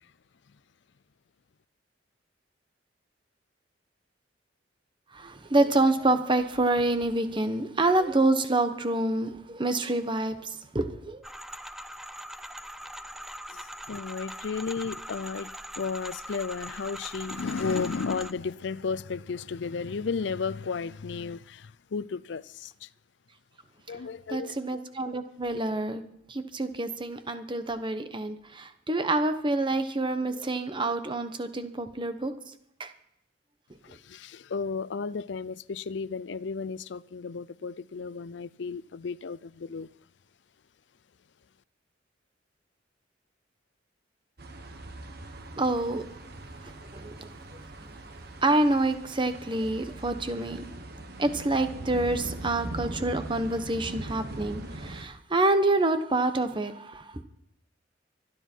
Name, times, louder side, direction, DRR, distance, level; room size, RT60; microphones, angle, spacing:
voice 1, 5.1-11.2 24.3-26.0 26.3-32.3 32.8-32.9 33.9-34.0 45.6-46.0 46.6-47.3 48.4-50.6 51.2-57.2, right 2 dB, 25° right, 1.1 m, -27 dB
sound 1, 11.2-18.3, equal, ahead, 0.5 m, -41 dB
voice 2, 13.5-15.5 15.8-22.9 23.9-24.6 33.8-39.9, left 5 dB, 65° left, 0.5 m, -33 dB
sound 2, 44.4-55.1, right 1 dB, 55° right, 1.5 m, -41 dB
24.5 x 10.0 x 4.5 m
head